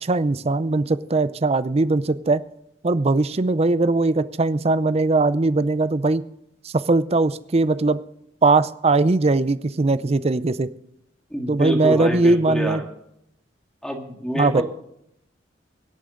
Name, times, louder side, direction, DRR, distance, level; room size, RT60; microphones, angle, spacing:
voice 1, 0.0-2.4 2.8-6.2 6.6-8.0 8.4-10.7 11.5-12.8 14.4-14.6, right 3 dB, 35° right, 15 dB, 0.5 m, -20 dB
voice 2, 11.3-12.8 13.8-14.6, equal, 5° left, 2 dB, 2.0 m, -27 dB
23.5 x 8.8 x 3.8 m, 0.78 s
head